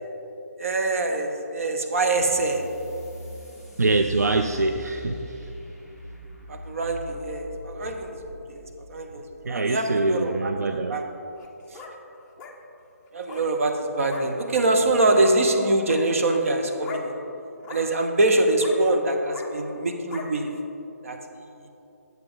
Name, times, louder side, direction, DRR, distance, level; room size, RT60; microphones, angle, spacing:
voice 1, 0.6-2.6 6.5-8.2 8.5-8.6 8.9-10.5 10.9-11.0 13.1-17.2 17.7-20.5 21.0-21.2, right 2 dB, 55° right, 4 dB, 0.9 m, -24 dB
sound 1, 2.2-9.3, equal, 5° right, 1.3 m, -42 dB
voice 2, 3.8-5.5 9.4-11.0, right 2 dB, 85° right, 6 dB, 0.4 m, -24 dB
sound 2, 11.3-11.9 12.4-12.5 13.2-13.5 14.1-14.2 15.1-15.3 15.7-16.0 16.8-17.1 17.6-17.9 18.6-18.8 19.3-19.5 20.1-20.3, left 6 dB, 15° left, 0.5 m, -38 dB
7.8 x 7.4 x 3.8 m, 2.9 s
figure-of-eight pair, 145°, 9 cm